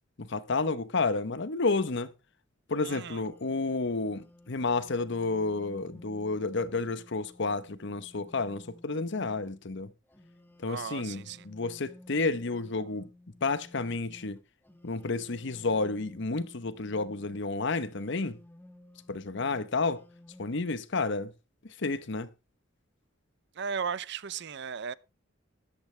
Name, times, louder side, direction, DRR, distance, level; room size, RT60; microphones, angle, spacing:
voice 1, 0.2-2.1 2.7-9.9 10.6-13.1 13.4-14.4 14.8-18.4 19.1-20.0 20.4-21.3 21.8-22.3, left 3 dB, 65° left, 0.9 m, -31 dB
sound 1, 2.8-9.5 10.1-17.4 17.8-20.6, left 1 dB, 10° left, 1.4 m, -55 dB
voice 2, 2.8-3.3 10.6-11.5 23.5-24.9, right 6 dB, 60° right, 0.6 m, -36 dB
13.0 x 12.0 x 3.3 m
head